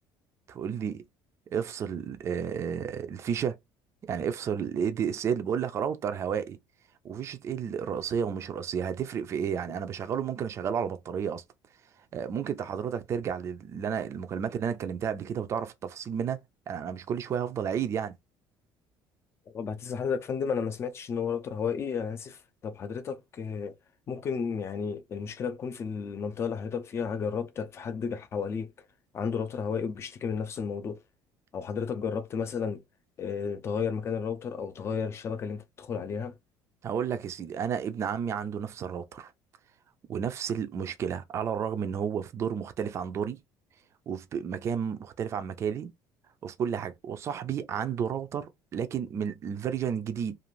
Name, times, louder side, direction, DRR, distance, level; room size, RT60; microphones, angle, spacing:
voice 1, 0.5-1.0 1.5-3.6 4.1-6.6 7.0-11.4 12.1-16.4 16.7-18.1 36.8-39.3 40.1-43.4 44.1-45.9 46.4-50.4, right 7 dB, 35° right, 0.4 m, -32 dB
voice 2, 19.5-23.7 24.1-28.7 29.1-31.0 31.5-32.8 33.2-36.3, left 6 dB, 30° left, 0.5 m, -32 dB
2.5 x 2.4 x 3.0 m
cardioid pair, 145°, 9 cm